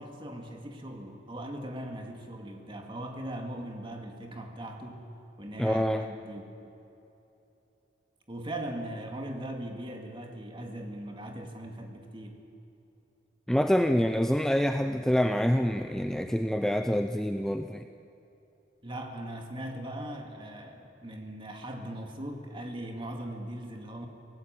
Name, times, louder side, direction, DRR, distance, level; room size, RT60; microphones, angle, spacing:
voice 1, 0.0-5.1 5.4-6.4 8.3-12.4 18.8-24.1, right 1 dB, 30° right, 2 dB, 2.3 m, -39 dB
voice 2, 5.6-6.0 13.5-17.9, equal, 5° left, 7 dB, 0.5 m, -26 dB
24.5 x 18.0 x 7.8 m, 2.9 s
head